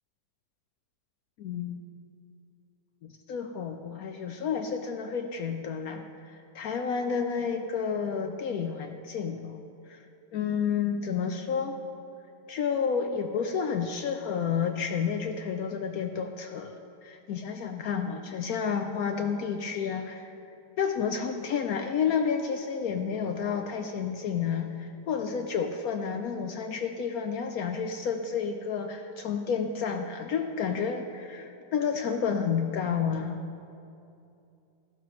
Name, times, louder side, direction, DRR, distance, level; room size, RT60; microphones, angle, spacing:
voice 1, 1.4-1.8 3.0-9.6 9.9-10.0 10.3-11.8 12.5-16.8 17.0-20.3 20.8-33.4, left 6 dB, 70° left, 6 dB, 0.9 m, -30 dB
14.5 x 12.0 x 3.1 m, 2.6 s
omnidirectional pair, 1.9 m